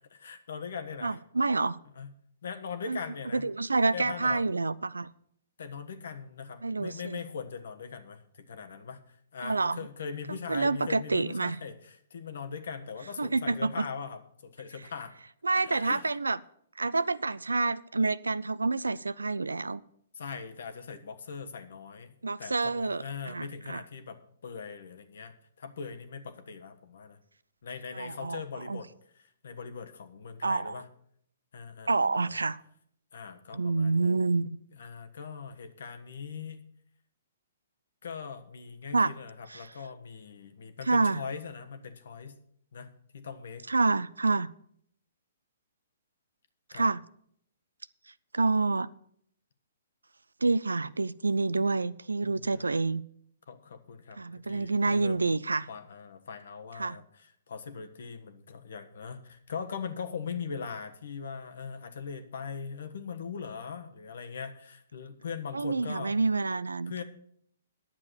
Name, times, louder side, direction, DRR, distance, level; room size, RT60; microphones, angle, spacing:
voice 1, 0.1-1.2 1.9-2.1 2.4-3.5 3.9-4.5 5.6-15.2 15.5-16.1 20.2-27.2 27.6-28.9 29.4-30.9 31.5-32.4 33.1-34.1 34.8-36.6 38.0-42.4 42.7-43.7 46.7-46.8 52.2-52.7 53.5-55.2 55.7-66.1 66.9-67.0, left 6 dB, 65° left, 8 dB, 1.3 m, -41 dB
voice 2, 1.0-1.8 2.9-3.0 3.3-5.1 6.6-7.2 9.4-9.9 10.3-11.6 13.2-13.9 15.4-16.4 16.8-19.8 22.2-23.8 27.9-28.4 28.7-28.8 30.4-30.8 31.9-32.6 33.5-34.6 38.9-39.1 39.5-39.7 40.8-41.2 43.7-44.5 46.7-47.0 48.3-48.9 50.4-53.0 54.2-55.7 56.7-57.0 65.5-67.0, right 3 dB, 85° right, 19 dB, 0.4 m, -28 dB
10.5 x 7.4 x 6.7 m, 0.66 s
figure-of-eight pair, 125°, 0 cm